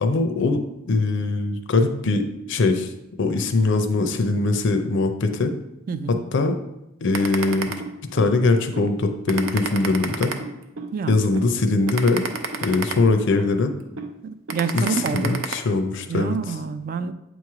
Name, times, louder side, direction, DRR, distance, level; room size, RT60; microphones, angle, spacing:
voice 1, 0.0-2.9 3.2-5.5 6.1-6.6 7.0-7.7 8.1-10.3 11.1-12.3 12.6-13.7 14.7-16.4, left 3 dB, 65° left, 6 dB, 0.5 m, -21 dB
voice 2, 5.9-6.2 10.9-11.2 14.2-15.4 16.1-17.1, right 5 dB, 45° right, 11 dB, 0.3 m, -27 dB
sound 1, 7.1-8.3 8.8-8.9 9.3-10.9 11.4-11.5 11.9-13.5 14.0-14.1 14.5-15.5, right 4 dB, 80° right, 0.7 m, -29 dB
8.0 x 3.1 x 4.7 m, 0.92 s
head